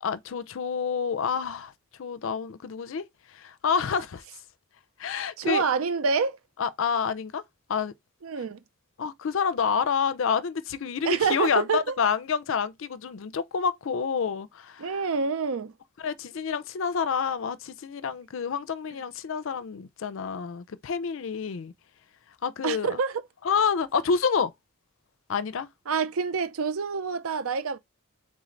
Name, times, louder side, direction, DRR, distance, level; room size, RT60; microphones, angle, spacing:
voice 1, 0.0-1.7 2.0-3.1 3.3-4.2 5.0-5.6 6.6-7.4 7.7-7.9 9.0-14.9 16.0-21.7 22.4-23.0 23.4-24.5 25.3-25.7, left 6 dB, 65° left, 0.4 m, -28 dB
voice 2, 5.4-6.4 8.2-8.6 11.0-11.9 14.8-15.7 22.6-23.2 25.9-27.8, right 5 dB, 80° right, 0.5 m, -27 dB
3.8 x 3.7 x 3.1 m
head